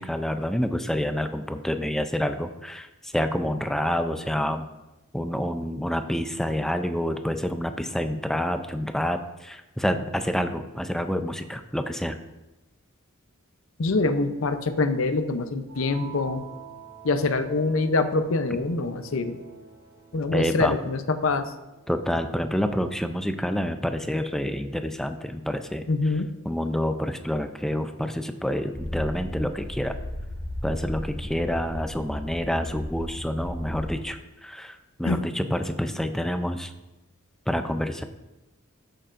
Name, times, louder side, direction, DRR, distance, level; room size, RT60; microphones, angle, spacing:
voice 1, 0.0-4.7 5.1-12.2 20.3-20.8 21.9-25.9 26.5-30.0 30.6-36.7 37.5-38.0, equal, ahead, 8 dB, 0.4 m, -28 dB
voice 2, 13.8-16.4 17.0-19.4 20.1-21.5 25.9-26.3 35.0-35.2, left 3 dB, 65° left, 9 dB, 0.6 m, -25 dB
sound 1, 15.7-22.2, right 4 dB, 65° right, 2.6 m, -45 dB
sound 2, 28.7-33.9, left 1 dB, 45° left, 2.4 m, -35 dB
13.0 x 6.8 x 2.5 m, 1.0 s
head